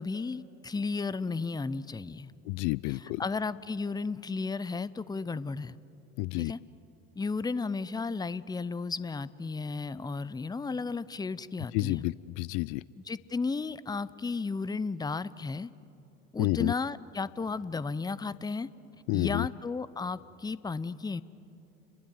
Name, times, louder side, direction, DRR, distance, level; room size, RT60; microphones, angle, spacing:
voice 1, 0.0-2.3 2.9-5.8 6.4-6.6 7.2-12.1 13.0-15.7 16.3-18.7 19.1-21.2, left 4 dB, 10° left, 18 dB, 0.7 m, -34 dB
voice 2, 2.5-3.2 6.2-6.5 11.7-12.8 16.4-16.7 19.1-19.5, left 23 dB, 55° left, 21 dB, 0.5 m, -29 dB
29.5 x 22.0 x 8.0 m, 2.8 s
hypercardioid pair, 70°, 39 cm